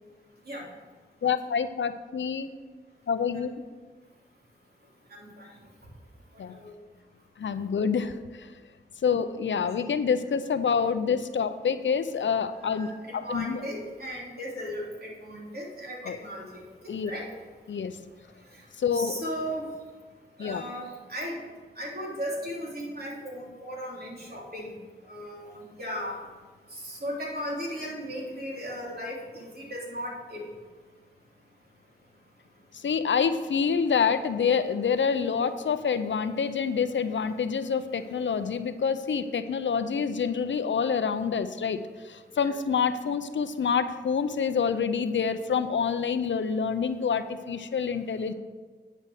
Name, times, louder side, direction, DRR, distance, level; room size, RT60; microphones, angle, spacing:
voice 1, 1.2-2.5 3.1-3.5 6.4-6.5 7.4-8.2 9.0-13.6 16.0-16.2 16.9-17.1 17.7-17.9 18.8-19.2 20.4-20.6 32.8-41.8 42.1-48.3, left 6 dB, 85° left, 11 dB, 0.6 m, -27 dB
voice 2, 5.1-5.5 6.5-6.7 12.6-17.3 18.5-18.6 18.9-19.7 20.4-21.4 21.8-24.8 25.0-26.2 26.7-30.4 42.4-42.5, equal, 55° right, -3 dB, 3.3 m, -36 dB
10.0 x 5.4 x 6.5 m, 1.4 s
cardioid pair, 45°, 19 cm